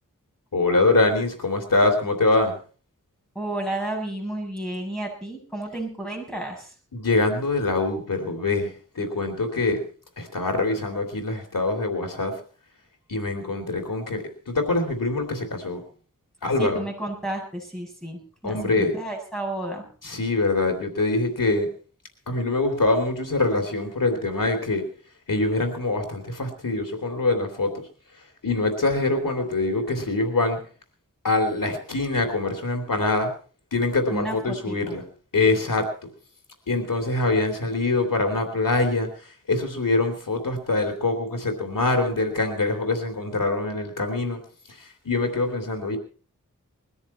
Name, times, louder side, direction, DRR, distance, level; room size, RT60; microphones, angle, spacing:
voice 1, 0.5-2.6 6.9-9.8 10.2-12.3 13.1-15.8 16.4-16.8 18.4-18.9 20.0-21.7 22.3-24.8 25.3-27.8 28.4-30.6 31.2-33.3 33.7-35.0 35.3-35.9 36.7-39.1 39.5-44.4 45.0-46.0, left 2 dB, 90° left, 5 dB, 3.2 m, -24 dB
voice 2, 3.3-6.7 16.6-19.8 34.1-35.0, right 1 dB, ahead, -1 dB, 7.9 m, -32 dB
21.0 x 13.5 x 4.4 m, 0.40 s
wide cardioid pair, 55°, 32 cm